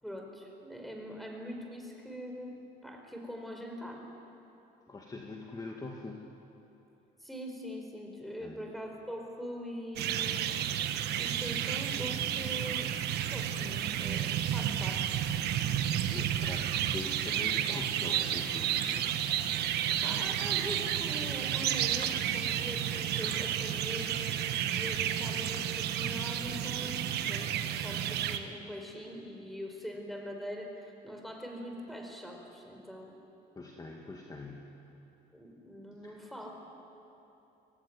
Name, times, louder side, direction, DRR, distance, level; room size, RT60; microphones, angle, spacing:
voice 1, 0.0-4.1 7.2-10.5 11.2-13.0 13.3-15.0 20.0-24.2 24.7-33.2 35.3-36.5, equal, ahead, 2 dB, 4.6 m, -43 dB
voice 2, 4.9-6.3 8.4-8.7 16.1-19.1 33.6-34.7 36.0-36.2, left 3 dB, 20° left, 1 dB, 2.0 m, -43 dB
sound 1, 10.0-28.4, right 10 dB, 75° right, 1.2 m, -31 dB
23.5 x 17.5 x 9.6 m, 3.0 s
cardioid pair, 110°, 17 cm